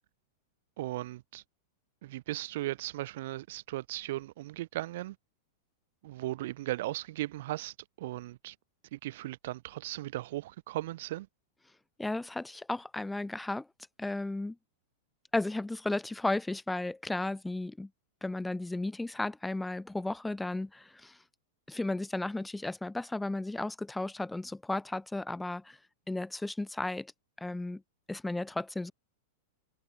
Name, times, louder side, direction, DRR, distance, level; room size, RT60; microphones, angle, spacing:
voice 1, 0.8-1.4 2.0-5.2 6.0-8.5 8.9-11.3, right 16 dB, 65° right, 6.9 m, -37 dB
voice 2, 12.0-13.7 14.0-14.5 15.3-17.9 18.2-21.2 21.7-25.8 26.1-27.1 27.4-27.8 28.1-28.9, left 2 dB, 5° left, 1.0 m, -34 dB
hypercardioid pair, 130°, 0 cm